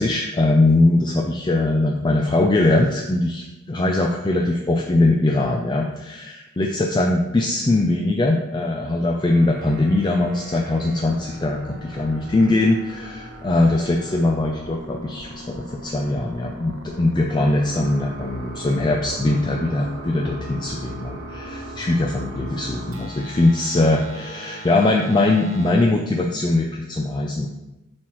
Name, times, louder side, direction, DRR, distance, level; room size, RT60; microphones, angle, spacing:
voice 1, 0.0-27.5, left 2 dB, 20° left, 1 dB, 0.4 m, -21 dB
sound 1, 9.2-25.7, right 1 dB, 85° right, 1.0 m, -38 dB
7.3 x 4.7 x 3.0 m, 0.97 s
head